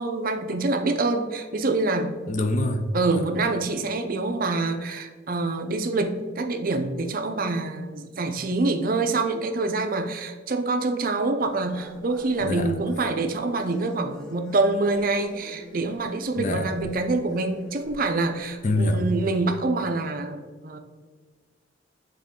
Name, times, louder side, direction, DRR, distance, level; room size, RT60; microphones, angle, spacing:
voice 1, 0.0-2.2 2.9-20.8, right 3 dB, 50° right, 6 dB, 0.5 m, -26 dB
voice 2, 2.3-2.9 3.1-3.2 12.4-12.7 16.4-16.7 18.6-19.1, left 1 dB, 40° left, 7 dB, 0.5 m, -25 dB
sound 1, 11.4-19.7, equal, 5° left, 0.9 m, -46 dB
8.9 x 3.6 x 3.7 m, 1.4 s
head